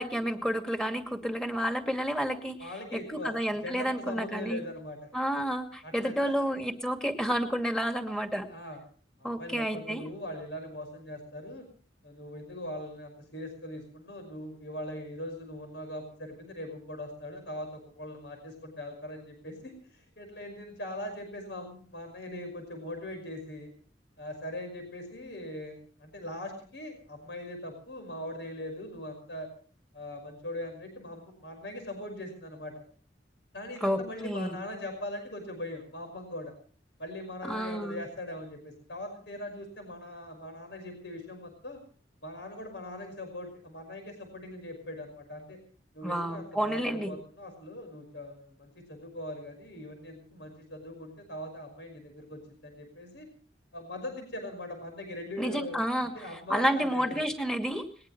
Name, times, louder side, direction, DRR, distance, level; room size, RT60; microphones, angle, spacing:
voice 1, 0.0-4.6 5.1-8.5 9.2-10.0 33.8-34.6 37.4-38.0 46.0-47.1 55.4-56.1 56.5-57.8, equal, 5° left, 5 dB, 2.4 m, -30 dB
voice 2, 2.6-5.1 5.8-6.6 8.5-8.8 9.2-11.7 12.0-23.7 24.2-29.5 29.9-32.7 33.5-36.5 37.0-41.8 42.2-45.6 45.9-53.3 53.7-57.2, left 1 dB, 70° left, 5 dB, 5.7 m, -41 dB
21.5 x 20.5 x 3.3 m, 0.43 s
head